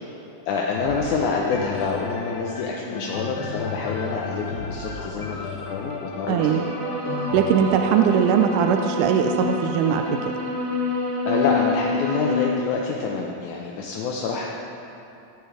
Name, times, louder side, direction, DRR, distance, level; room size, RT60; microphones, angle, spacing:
voice 1, 0.5-6.7 11.3-14.5, left 4 dB, 75° left, -1 dB, 2.3 m, -27 dB
sound 1, 0.7-10.5 11.2-11.3, left 4 dB, 55° left, 1.1 m, -34 dB
voice 2, 6.3-6.6 7.3-10.2, right 8 dB, 85° right, 5 dB, 2.1 m, -20 dB
sound 2, 6.4-12.5, left 2 dB, 55° right, 1.3 m, -27 dB
16.0 x 9.7 x 5.0 m, 2.7 s
omnidirectional pair, 3.6 m